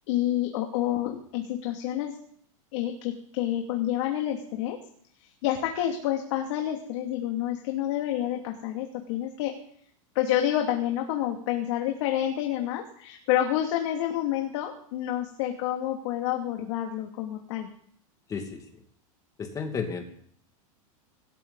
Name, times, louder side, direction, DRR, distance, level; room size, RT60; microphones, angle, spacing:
voice 1, 0.1-2.2 2.7-4.8 5.2-9.5 10.1-17.7, left 12 dB, 55° left, 2 dB, 2.7 m, -28 dB
voice 2, 19.4-20.0, left 5 dB, 20° left, 5 dB, 2.4 m, -32 dB
24.5 x 14.0 x 4.1 m, 0.63 s
supercardioid pair, 155°, 18 cm